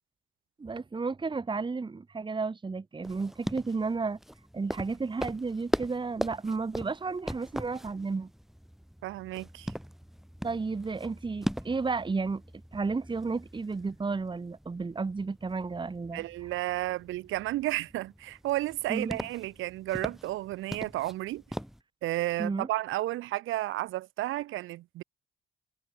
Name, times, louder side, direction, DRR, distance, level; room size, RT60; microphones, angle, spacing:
voice 1, 0.6-4.2 4.5-8.3 10.4-12.4 12.7-16.2 18.9-19.2 22.4-22.7, right 4 dB, 25° right, 1.6 m, -32 dB
sound 1, 3.0-21.8, equal, ahead, 2.3 m, -40 dB
voice 2, 9.0-9.7 16.1-21.4 22.0-25.0, right 16 dB, 85° right, 0.9 m, -32 dB
cardioid pair, 90°, 20 cm